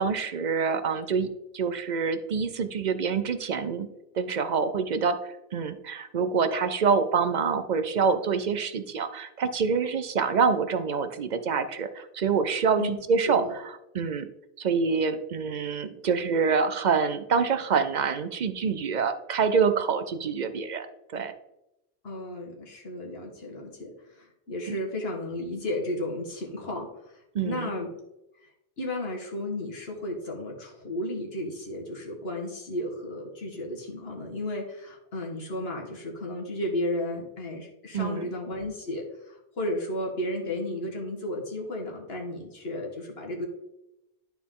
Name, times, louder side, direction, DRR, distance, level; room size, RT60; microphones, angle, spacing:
voice 1, 0.0-3.9 4.2-5.2 5.5-14.3 14.6-20.9 21.1-21.3 24.7-24.8 27.3-27.7 37.9-38.3, right 5 dB, 50° right, 10 dB, 0.6 m, -26 dB
voice 2, 22.0-27.9 28.4-28.5 28.8-43.5, left 1 dB, 65° left, 0 dB, 1.7 m, -33 dB
11.5 x 4.4 x 3.7 m, 0.90 s
omnidirectional pair, 1.1 m